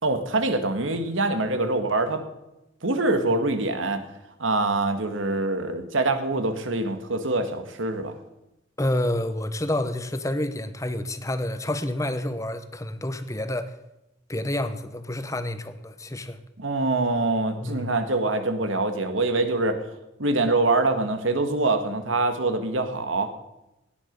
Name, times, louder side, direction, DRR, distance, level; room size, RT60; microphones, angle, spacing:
voice 1, 0.0-2.2 2.8-4.1 4.4-8.1 16.6-19.8 20.2-23.3, right 2 dB, 90° right, 8 dB, 1.8 m, -24 dB
voice 2, 8.8-13.8 14.3-16.4 17.6-17.9, left 1 dB, 15° left, 11 dB, 1.0 m, -29 dB
17.0 x 10.0 x 5.3 m, 0.92 s
head